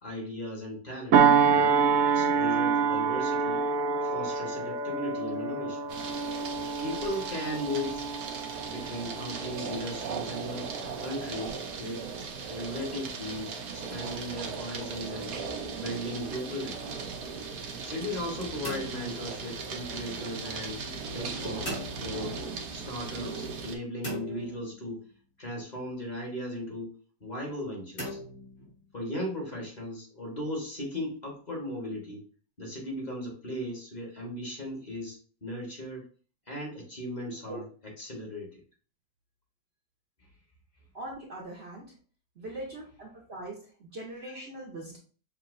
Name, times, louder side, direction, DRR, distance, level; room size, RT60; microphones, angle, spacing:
voice 1, 0.0-1.7 2.1-3.6 4.0-5.9 6.8-8.1 8.6-10.7 11.0-12.1 12.4-15.3 15.7-17.1 17.8-20.8 21.1-22.4 22.7-25.0 25.4-26.9 27.2-28.2 28.9-32.3 32.6-36.0 36.5-38.6, left 1 dB, 30° left, -2 dB, 1.3 m, -37 dB
sound 1, 1.1-10.0 10.4-10.7, right 6 dB, 70° right, 0.7 m, -26 dB
sound 2, 5.9-23.8, right 5 dB, 90° right, 1.4 m, -38 dB
sound 3, 18.6-20.0 21.7-22.7 24.0-25.3 28.0-29.2, left 1 dB, 60° left, 2.7 m, -40 dB
voice 2, 40.9-41.8 42.4-45.0, right 1 dB, 50° right, -3 dB, 1.0 m, -41 dB
6.2 x 2.8 x 2.6 m, 0.42 s
omnidirectional pair, 1.7 m